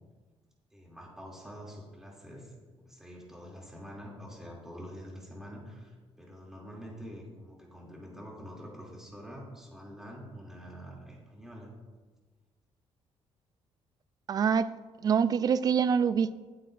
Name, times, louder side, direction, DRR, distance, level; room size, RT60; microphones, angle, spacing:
voice 1, 0.7-2.5 2.8-11.7, equal, 5° right, -3 dB, 2.6 m, -46 dB
voice 2, 14.3-14.7 15.0-16.3, right 7 dB, 40° right, 14 dB, 0.4 m, -25 dB
20.0 x 7.9 x 2.5 m, 1.4 s
cardioid pair, 145°, 10 cm